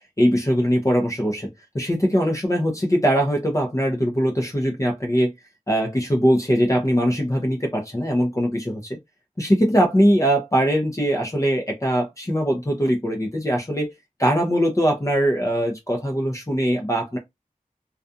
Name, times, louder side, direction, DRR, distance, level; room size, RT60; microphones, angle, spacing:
voice 1, 0.2-5.3 5.7-9.0 9.4-13.9 14.2-17.2, equal, 20° left, 0.6 m, -21 dB
2.3 x 2.3 x 2.6 m
wide cardioid pair, 50°, 14 cm